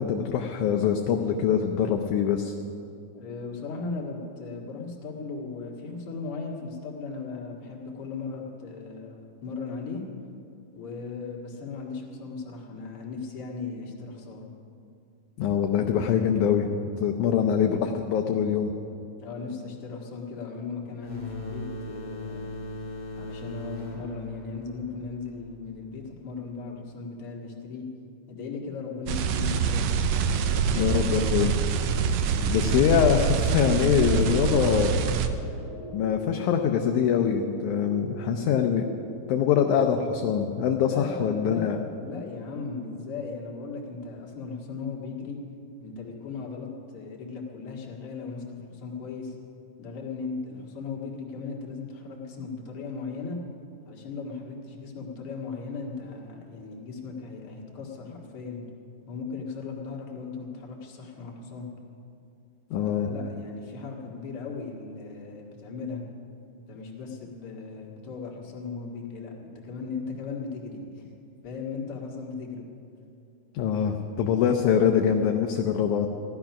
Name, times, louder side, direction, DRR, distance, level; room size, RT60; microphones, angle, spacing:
voice 1, 0.0-2.5 15.4-16.7 17.0-18.7 30.7-31.5 32.5-35.0 35.9-38.9 39.3-41.8 62.7-63.1 73.5-76.1, left 8 dB, 75° left, 4 dB, 1.9 m, -24 dB
voice 2, 3.1-10.0 10.7-14.5 17.2-17.4 19.2-22.6 23.2-27.8 28.3-29.9 40.9-45.4 45.8-49.3 49.8-53.4 53.9-58.6 59.1-61.7 62.8-66.0 66.7-71.1 71.4-72.7 74.0-74.7, left 4 dB, 45° left, -2 dB, 2.4 m, -37 dB
sound 1, 21.0-26.4, left 1 dB, 25° left, 1.0 m, -39 dB
sound 2, 28.9-43.0, right 3 dB, ahead, 2.0 m, -44 dB
sound 3, 29.1-35.3, right 6 dB, 85° right, 1.5 m, -25 dB
15.5 x 12.0 x 5.9 m, 2.6 s
omnidirectional pair, 3.9 m